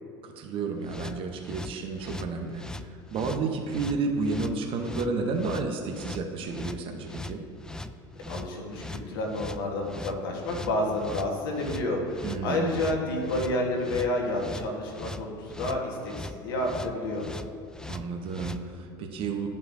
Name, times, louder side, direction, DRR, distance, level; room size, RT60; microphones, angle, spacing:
voice 1, 0.4-2.6 2.9-7.4 12.2-12.7 17.9-19.5, right 4 dB, 50° right, 4 dB, 0.8 m, -31 dB
sound 1, 0.8-18.6, left 2 dB, 5° left, 0.3 m, -40 dB
voice 2, 8.3-17.2, left 1 dB, 80° left, 0 dB, 1.4 m, -30 dB
11.0 x 5.4 x 2.6 m, 2.5 s
hypercardioid pair, 85°, 12 cm